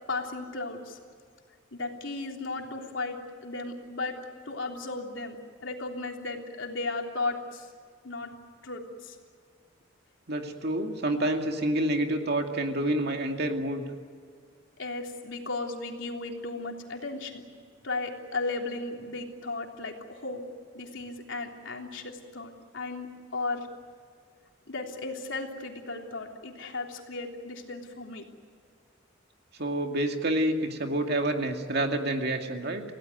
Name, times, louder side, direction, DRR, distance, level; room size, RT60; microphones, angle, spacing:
voice 1, 0.1-1.0 1.7-4.2 4.4-5.4 5.6-7.7 8.0-8.3 8.6-9.2 14.8-17.4 17.8-20.4 20.7-23.7 24.7-28.3, left 3 dB, 75° left, 1 dB, 3.4 m, -35 dB
voice 2, 10.3-13.8 29.6-32.8, right 1 dB, 55° right, 4 dB, 2.4 m, -28 dB
28.5 x 17.0 x 9.3 m, 2.1 s
head